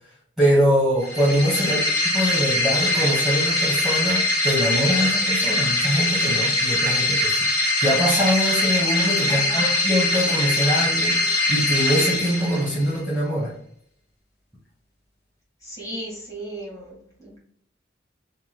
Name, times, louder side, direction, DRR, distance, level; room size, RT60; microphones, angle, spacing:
voice 1, 0.4-7.4 7.8-13.5, equal, ahead, -8 dB, 0.8 m, -23 dB
sound 1, 1.0-12.9, left 2 dB, 60° left, 0.9 m, -22 dB
voice 2, 9.3-9.8 11.4-11.5 15.6-17.4, right 1 dB, 20° left, -5 dB, 1.4 m, -35 dB
2.8 x 2.1 x 3.2 m, 0.67 s
head